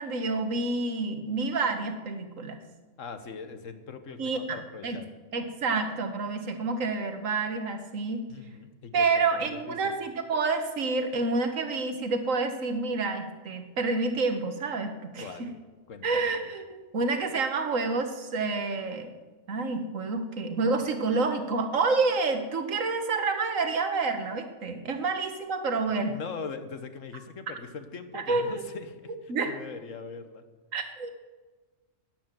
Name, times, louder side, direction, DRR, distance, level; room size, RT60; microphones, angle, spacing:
voice 1, 0.0-2.6 4.2-4.6 4.8-5.0 5.3-8.3 8.9-15.5 16.0-19.1 19.5-26.2 28.1-28.5 29.3-29.6 30.7-31.1, right 3 dB, 90° right, 7 dB, 1.7 m, -28 dB
voice 2, 3.0-5.1 8.3-9.9 15.2-15.5 15.9-16.4 26.1-30.4, left 5 dB, 80° left, 9 dB, 1.5 m, -41 dB
12.0 x 10.5 x 7.5 m, 1.3 s
omnidirectional pair, 1.3 m